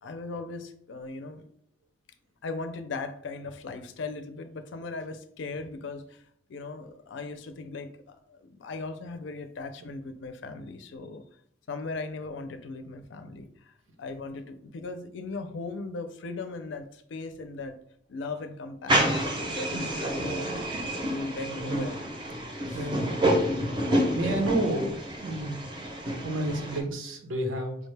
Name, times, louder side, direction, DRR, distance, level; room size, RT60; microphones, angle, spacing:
voice 1, 0.0-1.4 2.4-11.2 11.7-17.8 18.1-20.6 21.1-22.0 22.7-22.9 23.3-23.7, left 3 dB, 65° left, 9 dB, 0.4 m, -38 dB
sound 1, 18.9-26.8, right 1 dB, 25° right, 0.6 m, -28 dB
voice 2, 21.4-21.9 22.7-23.1 24.1-25.6 26.2-27.8, right 1 dB, 85° right, 2 dB, 0.9 m, -30 dB
4.9 x 2.1 x 3.2 m, 0.67 s
head